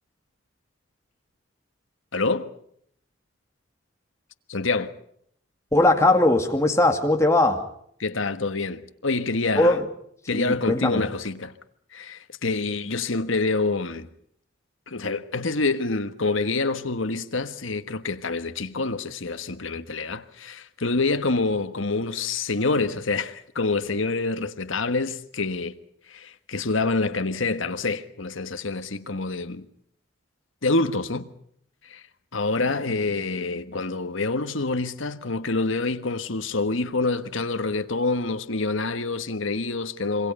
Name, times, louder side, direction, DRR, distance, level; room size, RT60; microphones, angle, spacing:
voice 1, 2.1-2.5 4.5-4.9 8.0-9.8 10.3-11.5 11.9-14.1 14.9-25.7 26.1-29.7 30.6-31.3 31.8-32.0 32.3-40.3, left 3 dB, 75° left, 1.5 m, -26 dB
voice 2, 5.7-7.6 9.6-9.8 10.3-11.0, left 2 dB, 15° left, 2.2 m, -20 dB
26.5 x 24.0 x 5.5 m
head